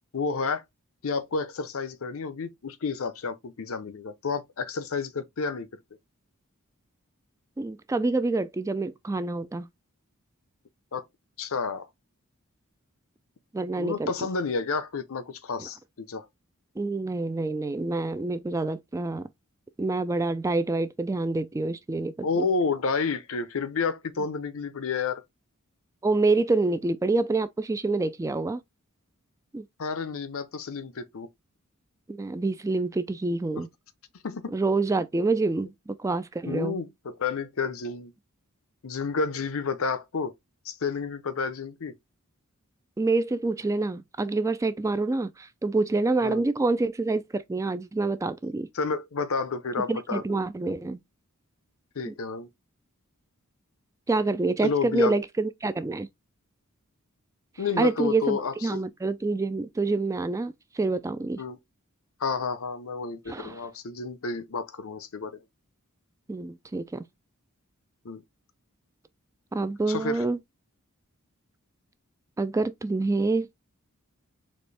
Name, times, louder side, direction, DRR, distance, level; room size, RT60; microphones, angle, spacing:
voice 1, 0.1-0.6 1.0-5.7 10.9-11.0 11.4-11.9 13.8-16.3 22.2-25.2 29.8-31.3 33.5-33.6 34.2-34.5 36.4-38.1 38.8-40.3 40.6-41.9 46.2-46.4 48.7-50.4 51.9-52.5 54.6-55.1 57.6-58.8 61.4-61.6 62.2-65.4 68.0-68.2 69.9-70.2, left 4 dB, 65° left, 0.7 m, -30 dB
voice 2, 7.6-9.7 13.5-14.1 15.6-15.7 16.8-19.3 19.8-22.5 26.0-28.6 29.5-29.6 32.1-33.7 34.5-36.8 43.0-48.7 49.9-51.0 52.1-52.2 54.1-56.1 57.8-61.4 63.3-63.6 66.3-67.0 69.5-70.4 72.4-73.5, right 3 dB, 15° right, 0.3 m, -27 dB
4.3 x 3.0 x 3.2 m
head